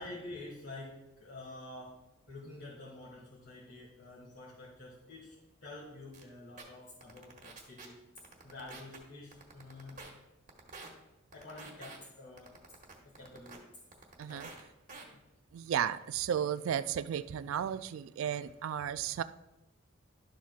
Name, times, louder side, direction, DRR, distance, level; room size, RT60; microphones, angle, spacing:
voice 1, 0.0-8.0 8.4-10.0 11.3-12.5 13.0-13.8 14.2-14.5 15.1-15.2, left 2 dB, 65° left, 1.7 m, -48 dB
sound 1, 6.1-6.2 6.6-6.7 7.0-7.9 8.2-9.0 9.3-10.1 10.5-10.9 11.3-12.0 12.4-13.6 13.9-14.6 14.9-15.0, right 4 dB, 40° right, 1.4 m, -48 dB
voice 2, 14.2-14.5 15.5-19.2, right 9 dB, 80° right, 0.3 m, -34 dB
12.0 x 7.2 x 2.4 m
head